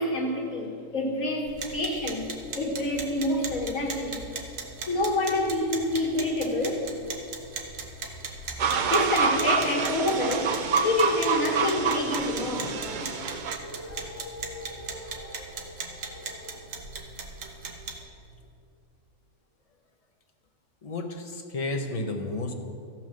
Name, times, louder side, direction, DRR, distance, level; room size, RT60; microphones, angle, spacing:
voice 1, 0.0-4.2 4.9-6.8 8.8-10.6 10.8-12.8 14.7-15.2, left 1 dB, 80° left, -1 dB, 2.0 m, -27 dB
sound 1, 1.5-18.0, right 4 dB, 75° right, 1.4 m, -39 dB
sound 2, 8.6-13.6, right 5 dB, 55° right, 0.5 m, -27 dB
sound 3, 12.3-16.7, left 1 dB, 50° left, 2.0 m, -44 dB
voice 2, 20.8-22.5, left 2 dB, 30° left, 3 dB, 0.9 m, -32 dB
14.0 x 5.9 x 6.3 m, 2.6 s
omnidirectional pair, 1.4 m